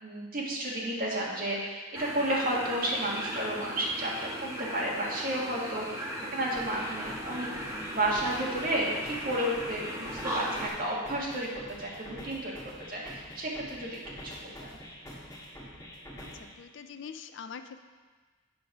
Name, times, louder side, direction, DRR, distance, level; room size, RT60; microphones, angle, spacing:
voice 1, 0.0-7.5 7.9-11.5 11.8-12.6 12.9-14.5, right 1 dB, 45° right, -4 dB, 1.8 m, -32 dB
sound 1, 1.9-10.7, equal, 15° right, 1.1 m, -38 dB
sound 2, 6.6-16.6, equal, 15° left, 1.5 m, -46 dB
voice 2, 16.2-17.8, left 6 dB, 60° left, 9 dB, 0.4 m, -44 dB
7.6 x 5.2 x 6.0 m, 1.4 s
head